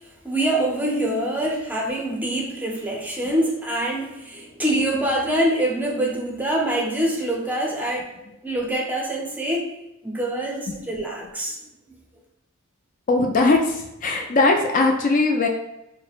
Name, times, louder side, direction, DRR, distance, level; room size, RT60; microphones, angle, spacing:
voice 1, 0.2-8.1 8.4-9.7 10.0-11.6, right 1 dB, 10° right, -1 dB, 0.6 m, -25 dB
voice 2, 13.1-15.5, left 3 dB, 40° left, 2 dB, 0.4 m, -20 dB
6.1 x 2.1 x 2.4 m, 0.92 s
head